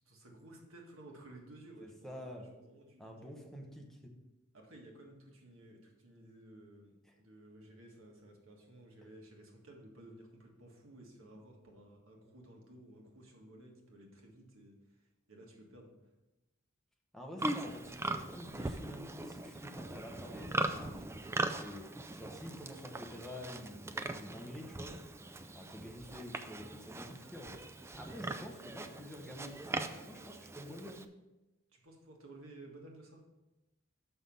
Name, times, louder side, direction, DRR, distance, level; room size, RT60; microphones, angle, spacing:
voice 1, 0.1-3.5 4.5-14.8 15.3-15.9 25.3-25.4 31.7-33.2, right 1 dB, 80° right, 0 dB, 1.7 m, -55 dB
voice 2, 1.8-2.5 3.0-4.1 7.0-7.1 17.1-21.0 21.4-24.9 25.5-27.6 28.0-31.0, equal, ahead, 0 dB, 0.9 m, -48 dB
Livestock farm animals working animals, 17.4-31.1, right 2 dB, 15° right, 0.4 m, -40 dB
6.9 x 5.8 x 5.4 m, 1.0 s
head